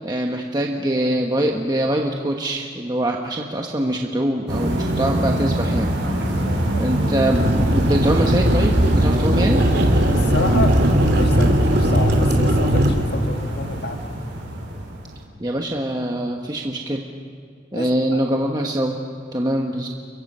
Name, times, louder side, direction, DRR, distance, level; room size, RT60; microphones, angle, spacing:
voice 1, 0.0-5.9 6.8-9.6 15.4-17.1 17.7-18.9 19.3-19.9, right 1 dB, 20° right, 1 dB, 1.2 m, -23 dB
sound 1, 4.5-15.2, equal, 80° right, 5.4 m, -24 dB
voice 2, 6.2-6.9 10.1-10.7 11.1-14.0 16.6-16.7 17.7-18.3, left 2 dB, 60° left, 5 dB, 1.6 m, -30 dB
sound 2, 7.3-12.9, right 1 dB, 60° right, 2.9 m, -18 dB
29.5 x 23.0 x 5.6 m, 2.3 s
head